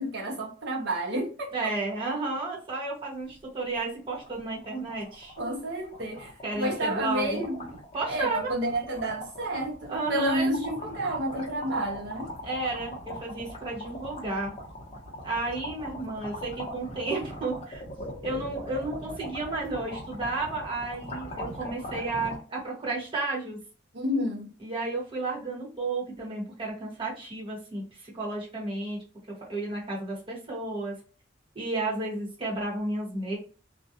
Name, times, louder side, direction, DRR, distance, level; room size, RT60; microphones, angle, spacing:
voice 1, 0.0-1.7 5.4-7.6 8.1-12.3 23.9-24.5, right 1 dB, 60° right, 0.6 m, -30 dB
voice 2, 1.5-5.3 6.4-7.4 7.9-8.5 9.9-10.5 12.4-14.5 15.2-17.8 18.2-23.6 24.6-29.0 29.3-30.9 31.5-33.4, right 2 dB, 25° right, 1.0 m, -32 dB
sound 1, 3.3-3.4 3.8-3.9 4.1-22.4, left 1 dB, 30° left, 0.8 m, -41 dB
2.4 x 2.1 x 2.7 m
head